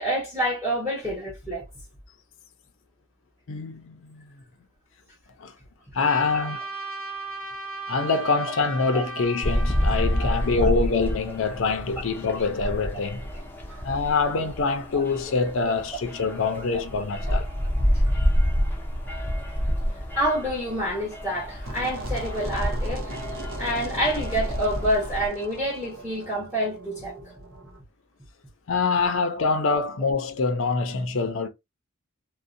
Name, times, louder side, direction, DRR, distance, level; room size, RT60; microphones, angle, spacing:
voice 1, 0.0-1.7 6.3-6.5 8.9-9.0 10.2-10.7 13.7-13.8 15.7-15.8 16.5-16.6 20.2-23.2 23.6-27.2, equal, 10° right, 0.9 m, -28 dB
voice 2, 3.5-4.2 5.4-5.5 5.9-6.6 7.9-13.3 13.8-17.5 28.7-31.5, left 4 dB, 65° left, 0.5 m, -25 dB
Trumpet, 6.0-10.7, right 2 dB, 40° right, 0.9 m, -36 dB
sound 1, 9.4-25.3, equal, 10° left, 0.4 m, -28 dB
sound 2, 21.6-27.8, right 1 dB, 70° right, 0.6 m, -38 dB
2.5 x 2.1 x 2.5 m
head